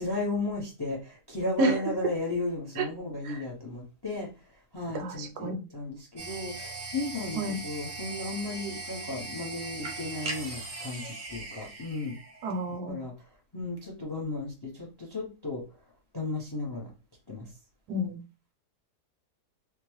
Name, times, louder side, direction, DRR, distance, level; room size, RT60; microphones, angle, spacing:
voice 1, 0.0-4.3 4.7-12.2 12.9-13.1 13.5-15.6 16.1-16.9 17.3-17.5, left 2 dB, 30° left, 0.4 m, -34 dB
voice 2, 4.9-5.6 7.3-7.6 12.4-13.0 17.9-18.2, right 1 dB, 75° right, 1.1 m, -29 dB
sound 1, 6.2-12.8, right 3 dB, 40° right, 0.7 m, -39 dB
3.6 x 2.1 x 3.0 m
omnidirectional pair, 1.8 m